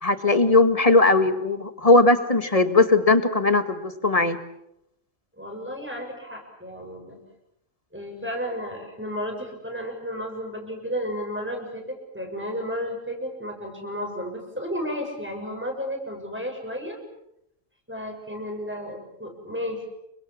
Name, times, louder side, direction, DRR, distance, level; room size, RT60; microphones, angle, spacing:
voice 1, 0.0-4.4, left 2 dB, 30° left, 9 dB, 1.9 m, -19 dB
voice 2, 5.4-7.2 7.9-17.0 17.9-19.9, equal, 10° right, 1 dB, 7.0 m, -33 dB
29.0 x 24.5 x 7.4 m, 0.79 s
omnidirectional pair, 1.3 m